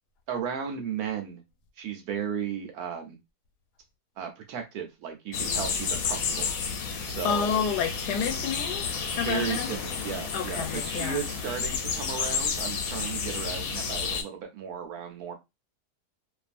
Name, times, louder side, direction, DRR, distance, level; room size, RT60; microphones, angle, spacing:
voice 1, 0.3-1.4 1.8-3.2 4.2-6.5 7.1-7.5 9.2-15.3, right 7 dB, 75° right, 1.2 m, -35 dB
sound 1, 5.3-14.2, left 6 dB, 70° left, 1.0 m, -31 dB
voice 2, 6.9-8.9 9.2-9.7 10.3-11.2, left 7 dB, 90° left, 1.2 m, -30 dB
2.6 x 2.5 x 2.4 m
omnidirectional pair, 1.7 m